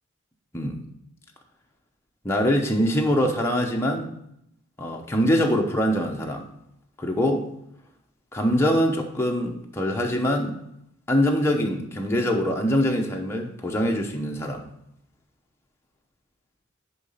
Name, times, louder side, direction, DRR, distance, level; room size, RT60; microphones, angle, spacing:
voice 1, 2.2-4.1 4.8-6.5 7.0-7.5 8.3-10.6 11.1-14.7, equal, 10° left, 0 dB, 0.7 m, -23 dB
6.9 x 5.0 x 5.5 m, 0.77 s
head